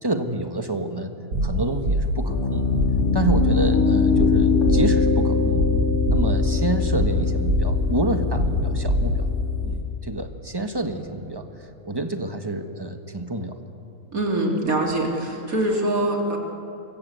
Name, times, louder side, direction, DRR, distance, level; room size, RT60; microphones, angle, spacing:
voice 1, 0.0-1.1 1.4-2.7 3.1-5.6 6.1-9.3 9.6-11.5 11.8-13.6, right 2 dB, 15° right, 6 dB, 1.5 m, -28 dB
sound 1, 1.3-9.6, right 1 dB, 85° right, 3.7 m, -25 dB
Piano, 2.3-9.8, left 5 dB, 75° left, 3.6 m, -22 dB
voice 2, 14.1-16.4, right 1 dB, 70° right, 0 dB, 3.6 m, -23 dB
28.0 x 23.5 x 8.3 m, 2.9 s
omnidirectional pair, 1.6 m